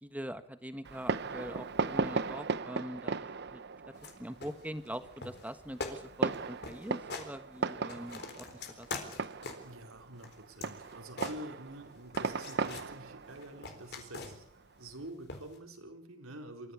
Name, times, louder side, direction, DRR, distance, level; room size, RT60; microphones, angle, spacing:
voice 1, 0.0-3.6 4.2-8.5 8.8-9.1, equal, 5° right, 9 dB, 1.4 m, -43 dB
Fireworks, 0.8-15.0, right 4 dB, 50° right, 0.8 m, -37 dB
sound 1, 3.9-4.1 4.4-5.0 5.2-5.5 5.8-6.0 6.3-6.4 6.6-7.3 7.7-9.7 10.2-11.8 12.1-12.9 13.3-14.6 15.3-15.6, left 3 dB, 50° left, 4.0 m, -43 dB
voice 2, 9.6-14.4 14.8-16.7, right 1 dB, 80° right, 4 dB, 4.4 m, -47 dB
27.0 x 14.5 x 8.5 m, 0.73 s
head